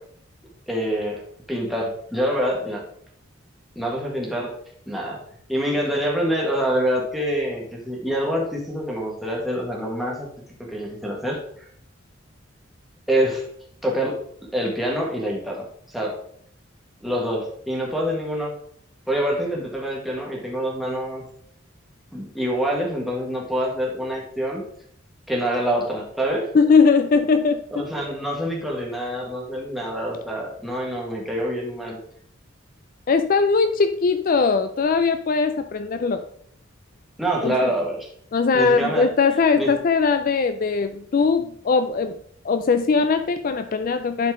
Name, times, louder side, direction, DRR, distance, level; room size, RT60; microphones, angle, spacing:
voice 1, 0.7-1.2 1.5-2.8 3.7-4.5 4.9-5.2 5.5-10.3 10.6-11.7 13.1-13.4 13.8-14.2 14.5-16.2 17.0-18.5 19.1-21.2 22.1-24.6 25.3-26.5 27.7-32.0 37.2-38.1 38.5-39.1 39.5-39.7, equal, ahead, -2 dB, 1.6 m, -26 dB
voice 2, 26.5-27.9 33.1-36.2 37.4-37.7 38.3-42.2 42.4-44.3, left 4 dB, 45° left, 9 dB, 0.3 m, -20 dB
11.0 x 4.2 x 3.7 m, 0.66 s
head